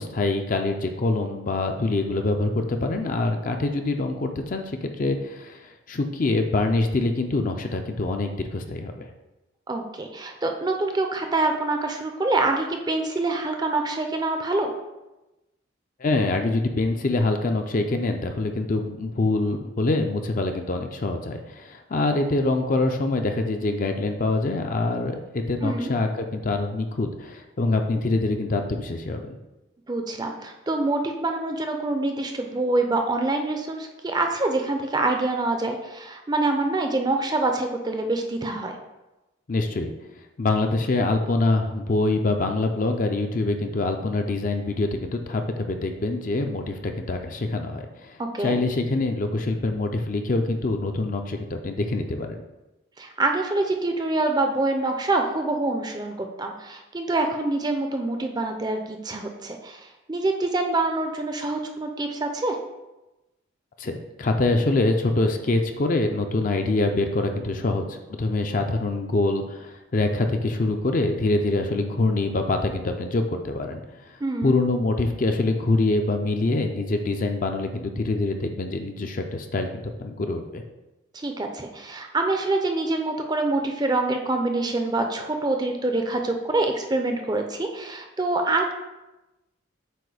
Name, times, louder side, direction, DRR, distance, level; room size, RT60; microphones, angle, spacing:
voice 1, 0.0-9.1 16.0-29.4 39.5-39.9 40.4-52.4 63.8-80.6, left 2 dB, 40° left, 5 dB, 0.5 m, -25 dB
voice 2, 9.7-14.7 25.6-25.9 29.9-38.7 48.2-48.6 53.0-62.6 74.2-74.6 81.1-88.7, right 2 dB, 20° right, 4 dB, 0.5 m, -25 dB
7.7 x 2.6 x 4.9 m, 1.0 s
head